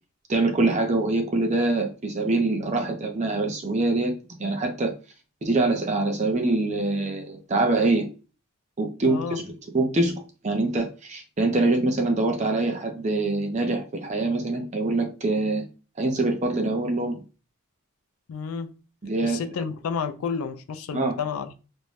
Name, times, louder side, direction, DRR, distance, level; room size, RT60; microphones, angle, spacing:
voice 1, 0.3-4.9 5.4-8.1 8.8-15.7 16.0-17.2 19.0-19.4 20.9-21.1, right 2 dB, 30° right, 0.5 m, -24 dB
voice 2, 9.0-9.4 18.3-18.7 19.2-21.5, left 6 dB, 80° left, 0.4 m, -31 dB
2.6 x 2.2 x 3.1 m
head